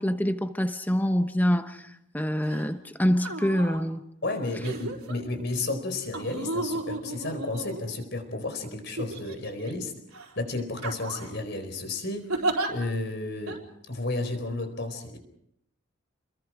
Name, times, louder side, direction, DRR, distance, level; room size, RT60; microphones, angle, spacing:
voice 1, 0.0-4.0, equal, 10° left, 1.1 m, -26 dB
sound 1, 2.5-2.7 3.1-3.8 4.6-5.2 6.1-8.2 9.0-9.7 10.1-10.3 10.8-11.4 12.3-12.7 13.5-13.6, right 2 dB, 90° right, 4.1 m, -33 dB
voice 2, 4.2-9.9 10.4-15.2, left 2 dB, 50° left, 4.4 m, -32 dB
29.0 x 22.0 x 4.9 m
head